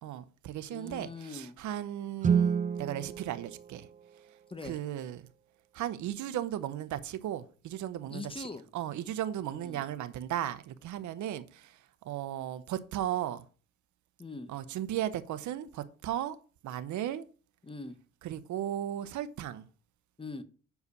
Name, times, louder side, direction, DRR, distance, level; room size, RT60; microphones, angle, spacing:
voice 1, 0.0-3.9 4.6-5.3 5.7-8.2 8.7-13.4 14.5-16.4 16.6-17.2 18.2-19.7, right 11 dB, 75° right, 0.8 m, -36 dB
voice 2, 0.7-1.6 4.5-4.8 8.1-8.6 9.5-9.9 14.2-14.5 17.6-18.0 20.2-20.4, left 3 dB, 15° left, 1.0 m, -42 dB
Guitar, 2.2-4.8, right 7 dB, 25° right, 0.4 m, -30 dB
6.7 x 4.8 x 6.6 m
cardioid pair, 90°, 30 cm